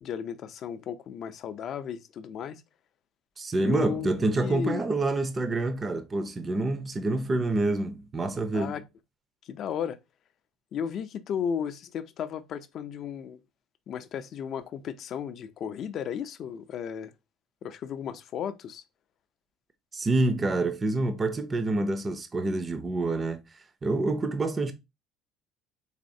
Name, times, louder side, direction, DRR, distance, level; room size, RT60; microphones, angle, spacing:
voice 1, 0.0-2.6 3.6-4.9 8.5-8.8 9.4-10.0 10.7-13.4 13.9-17.1 17.6-18.8, left 8 dB, 50° left, 0.4 m, -34 dB
voice 2, 3.4-8.7 19.9-23.4 23.8-24.7, right 2 dB, 20° right, 0.4 m, -27 dB
4.1 x 3.1 x 2.6 m
cardioid pair, 130°, 0 cm